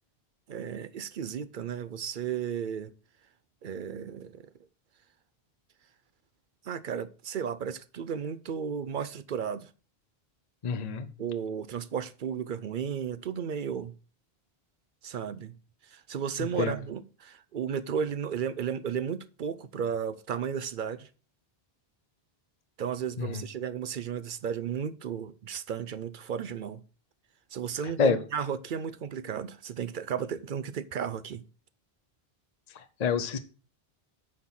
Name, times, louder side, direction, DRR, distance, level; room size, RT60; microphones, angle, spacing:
voice 1, 0.5-2.9 3.6-4.5 6.6-9.7 11.2-13.9 15.0-15.6 15.9-21.1 22.8-26.8 27.5-31.4, right 7 dB, 60° right, 0.7 m, -34 dB
voice 2, 10.6-11.1 16.6-16.7 23.2-23.3 28.0-28.2 33.0-33.4, left 5 dB, 45° left, 0.7 m, -26 dB
9.3 x 4.5 x 5.6 m
omnidirectional pair, 1.1 m